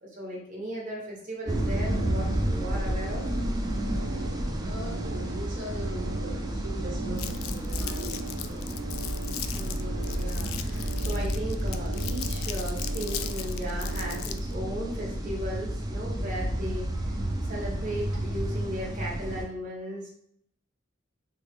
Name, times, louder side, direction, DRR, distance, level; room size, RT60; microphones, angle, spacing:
voice 1, 0.0-3.2 9.4-20.1, equal, 40° right, -3 dB, 1.0 m, -37 dB
sound 1, 1.4-14.2, right 4 dB, 90° right, 0.4 m, -43 dB
sound 2, 1.5-19.4, right 1 dB, 20° right, 0.4 m, -31 dB
voice 2, 4.6-8.6 9.5-9.8 12.3-12.5 16.9-17.0, right 1 dB, 65° right, -4 dB, 0.8 m, -41 dB
Crumpling crinkling, 7.2-14.5, left 11 dB, 85° left, 0.3 m, -38 dB
3.2 x 2.4 x 3.5 m, 0.67 s
head